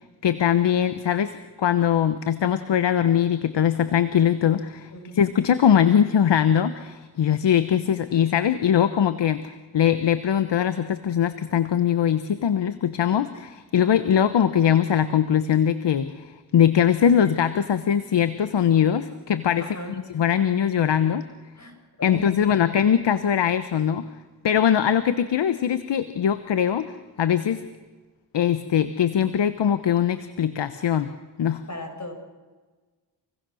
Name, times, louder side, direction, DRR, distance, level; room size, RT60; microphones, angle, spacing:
voice 1, 0.2-9.5 9.7-21.3 22.0-24.1 24.4-26.9 27.2-27.6 28.3-31.1 31.4-31.6, left 9 dB, 75° left, 12 dB, 1.1 m, -21 dB
voice 2, 19.6-20.0 21.6-22.6 31.7-32.1, left 1 dB, 40° left, 4 dB, 6.9 m, -38 dB
27.5 x 21.5 x 6.4 m, 1.3 s
cardioid pair, 45°, 43 cm